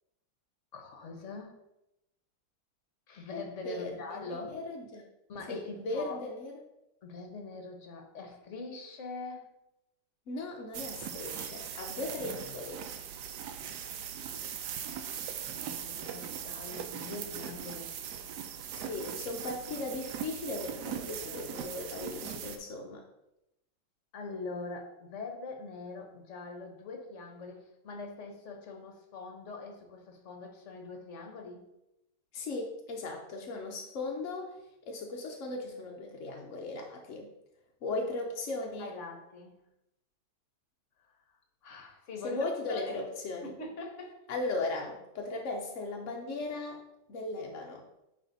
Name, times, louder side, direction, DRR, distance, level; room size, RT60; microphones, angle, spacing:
voice 1, 0.7-1.6 3.1-4.6 5.3-6.2 7.0-9.5 15.5-17.9 24.1-31.6 38.8-39.6 41.0-41.4 41.6-43.0 43.4-44.2, left 3 dB, 50° left, 3 dB, 1.0 m, -43 dB
voice 2, 3.6-5.0 5.5-6.5 10.3-12.8 18.7-23.0 32.3-34.5 34.9-37.3 37.8-38.9 42.2-43.5 44.3-46.8 47.1-47.8, left 2 dB, 70° left, 1 dB, 0.7 m, -37 dB
sound 1, 10.7-22.6, right 8 dB, 70° right, 1.0 m, -40 dB
9.1 x 3.3 x 3.9 m, 0.89 s
omnidirectional pair, 2.2 m